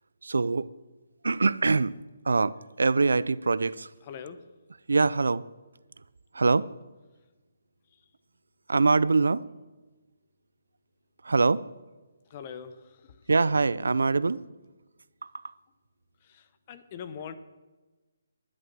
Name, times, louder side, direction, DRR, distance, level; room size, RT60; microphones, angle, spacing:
voice 1, 0.2-0.7 1.2-1.9 2.2-3.9 4.9-5.4 6.3-6.7 8.7-9.4 11.2-11.6 13.3-14.4 15.2-15.5, right 3 dB, 90° right, 0.5 m, -24 dB
voice 2, 4.1-4.4 12.3-13.1 16.3-17.4, left 7 dB, 30° left, 0.8 m, -42 dB
11.5 x 11.0 x 6.2 m
hypercardioid pair, 165°, 0 cm